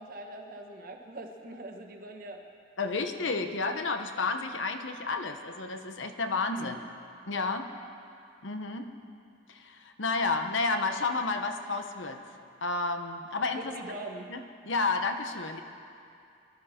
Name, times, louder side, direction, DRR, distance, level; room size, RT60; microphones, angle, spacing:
voice 1, 0.0-2.4 6.5-6.9 13.6-14.3, right 1 dB, 45° right, 2 dB, 1.4 m, -42 dB
voice 2, 2.8-6.8 7.3-7.7 8.4-8.9 9.5-12.2 12.6-13.8 14.3-15.6, left 3 dB, 65° left, 6 dB, 1.0 m, -31 dB
23.5 x 12.5 x 4.4 m, 2.5 s
head